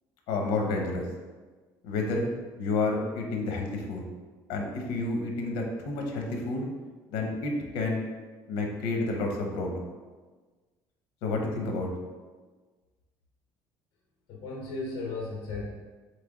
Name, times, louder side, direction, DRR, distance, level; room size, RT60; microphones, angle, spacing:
voice 1, 0.3-1.1 1.8-2.3 2.6-4.0 4.5-6.7 7.1-8.1 8.5-9.8 11.2-11.9, left 3 dB, 90° left, 1 dB, 0.8 m, -30 dB
voice 2, 14.3-15.7, left 3 dB, 60° left, -3 dB, 1.1 m, -35 dB
4.2 x 3.3 x 3.7 m, 1.3 s
cardioid pair, 130°, 8 cm